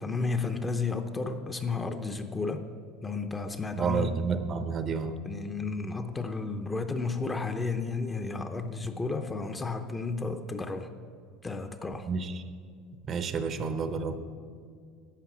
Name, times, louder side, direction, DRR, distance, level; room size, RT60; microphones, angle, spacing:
voice 1, 0.0-2.7 3.0-4.1 5.2-10.9 11.4-12.1, left 4 dB, 15° left, 8 dB, 0.6 m, -32 dB
voice 2, 3.7-5.2 12.1-12.4 13.1-14.2, right 5 dB, 30° right, 10 dB, 0.6 m, -30 dB
11.5 x 7.9 x 6.0 m, 2.1 s
supercardioid pair, 140°, 0 cm